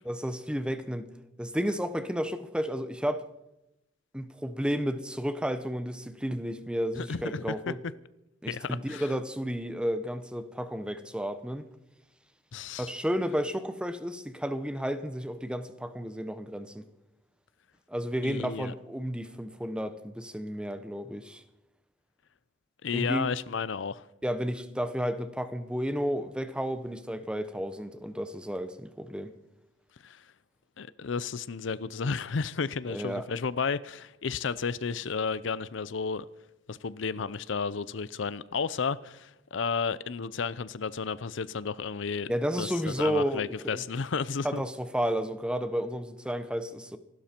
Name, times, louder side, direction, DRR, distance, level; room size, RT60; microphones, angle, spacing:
voice 1, 0.1-1.1 1.4-3.3 4.1-7.8 8.4-11.7 12.8-16.9 17.9-21.4 22.9-23.3 24.2-29.3 32.9-33.2 42.3-43.8 44.4-47.0, equal, 5° right, 0.9 m, -32 dB
voice 2, 7.0-7.7 8.5-9.0 12.5-12.9 18.2-18.7 22.8-24.1 30.0-30.2 30.8-36.3 36.7-42.3 42.6-42.7 43.0-44.6, left 5 dB, 65° left, 0.6 m, -32 dB
26.0 x 12.5 x 4.4 m
head